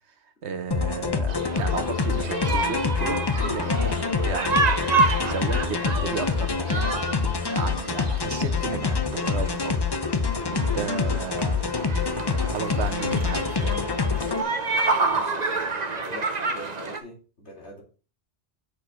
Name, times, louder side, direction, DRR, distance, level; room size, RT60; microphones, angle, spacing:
voice 1, 0.4-4.7 5.2-6.9 7.4-9.9 10.2-11.6 12.3-13.8, right 5 dB, 80° right, 1.4 m, -33 dB
sound 1, 0.7-14.4, left 5 dB, 30° left, 0.5 m, -26 dB
sound 2, 1.3-17.0, right 3 dB, 40° right, 1.0 m, -29 dB
voice 2, 15.0-17.8, left 1 dB, 85° left, 2.8 m, -44 dB
6.5 x 5.2 x 6.1 m
omnidirectional pair, 1.1 m